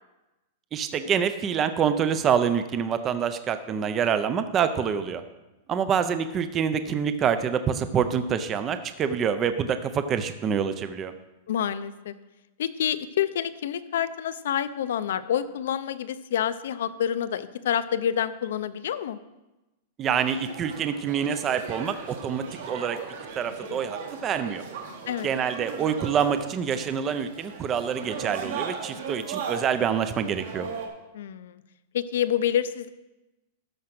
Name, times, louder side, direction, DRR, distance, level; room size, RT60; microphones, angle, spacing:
voice 1, 0.7-5.2 5.7-11.1 20.0-23.0 23.4-24.6 25.2-30.7, right 7 dB, 20° right, 10 dB, 0.4 m, -26 dB
voice 2, 11.5-12.1 12.6-19.2 25.1-25.3 31.1-31.6 31.9-32.9, left 9 dB, 65° left, 13 dB, 0.6 m, -28 dB
sound 1, 20.2-30.9, right 5 dB, 60° right, 1.7 m, -38 dB
13.0 x 4.9 x 6.0 m, 1.0 s
supercardioid pair, 175°, 0 cm